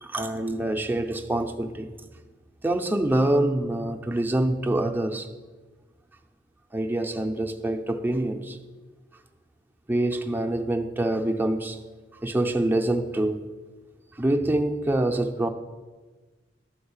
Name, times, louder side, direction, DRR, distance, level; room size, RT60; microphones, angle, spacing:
voice 1, 0.0-1.9 2.6-5.3 6.7-8.6 9.9-11.8 12.2-13.4 14.2-15.5, right 1 dB, 10° right, 0.5 m, -25 dB
12.0 x 4.2 x 7.2 m
head